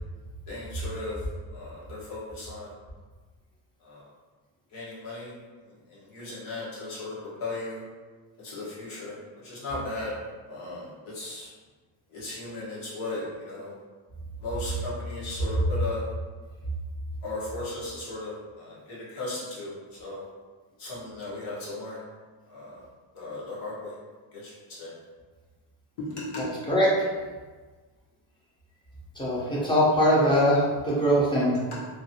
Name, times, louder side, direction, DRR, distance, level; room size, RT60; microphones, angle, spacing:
voice 1, 0.5-1.2 1.5-2.7 3.8-4.0 4.7-5.3 5.9-7.1 7.4-7.8 8.4-10.2 10.5-11.5 12.1-13.8 14.4-16.0 17.2-20.2 20.8-22.0 22.5-22.8 23.1-24.0 24.3-24.9 26.0-26.4 31.7-31.8, left 2 dB, 85° left, -7 dB, 1.4 m, -36 dB
voice 2, 26.4-26.9 29.2-31.6, equal, 10° left, -7 dB, 0.6 m, -22 dB
3.0 x 2.6 x 2.8 m, 1.4 s
cardioid pair, 165°, 48 cm